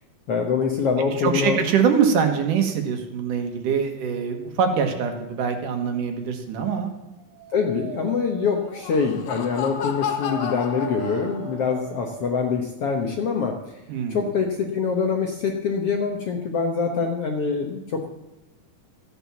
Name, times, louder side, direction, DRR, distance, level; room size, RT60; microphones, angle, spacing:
voice 1, 0.3-1.6 7.5-13.5 14.1-18.1, left 5 dB, 60° left, 2 dB, 1.6 m, -24 dB
voice 2, 1.1-6.9 13.9-14.3, right 6 dB, 70° right, 5 dB, 2.9 m, -23 dB
Dog, 7.0-12.5, right 8 dB, 85° right, 3.0 m, -40 dB
Laughter, 8.6-11.7, left 8 dB, 90° left, 3.1 m, -32 dB
14.5 x 9.4 x 7.1 m, 0.98 s
omnidirectional pair, 4.1 m